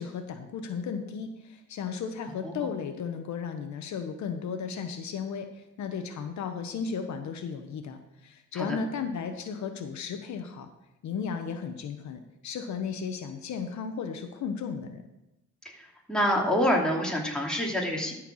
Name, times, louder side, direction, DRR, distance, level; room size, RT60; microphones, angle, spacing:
voice 1, 0.0-10.7 11.0-15.0, left 6 dB, 70° left, 7 dB, 1.0 m, -35 dB
voice 2, 15.6-18.1, equal, 5° left, -2 dB, 2.5 m, -27 dB
13.0 x 4.5 x 6.3 m, 0.91 s
cardioid pair, 90°, 30 cm